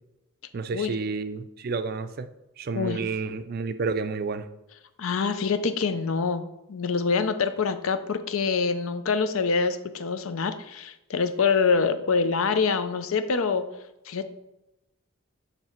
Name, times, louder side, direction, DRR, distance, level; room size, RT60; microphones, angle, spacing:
voice 1, 0.5-2.3 2.6-4.4, right 4 dB, 45° right, 11 dB, 0.4 m, -30 dB
voice 2, 5.0-13.6 14.1-14.3, left 5 dB, 80° left, 11 dB, 0.5 m, -25 dB
7.2 x 3.3 x 4.4 m, 0.91 s
head